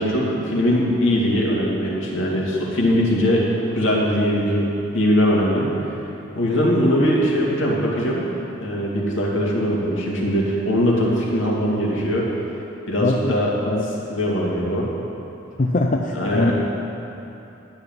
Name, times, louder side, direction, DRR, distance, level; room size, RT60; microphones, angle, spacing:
voice 1, 0.0-3.5 3.7-4.7 4.9-5.7 6.3-8.3 8.6-12.3 12.9-13.6 13.8-14.9 16.1-16.5, equal, 75° left, -4 dB, 2.5 m, -21 dB
voice 2, 13.0-13.3 13.7-13.8 15.6-16.5, left 2 dB, 40° left, 1 dB, 0.5 m, -21 dB
12.5 x 6.1 x 9.1 m, 2.9 s
head